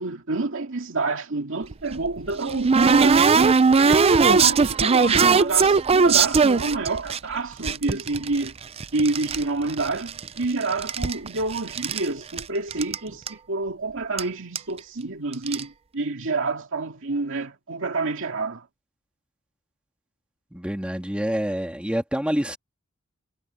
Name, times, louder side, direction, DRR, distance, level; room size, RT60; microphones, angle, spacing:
voice 1, 0.0-3.5 3.8-8.5 8.9-18.7, right 3 dB, 65° right, 2.2 m, -28 dB
sound 1, 1.7-7.2 7.6-9.4 9.7-10.5 10.7-12.1 12.4-12.5 12.7-13.0 13.3-13.4 14.2-14.3 14.6-14.8 15.3-15.6, right 5 dB, 30° right, 0.5 m, -19 dB
voice 2, 20.5-22.6, equal, 5° right, 2.4 m, -27 dB
head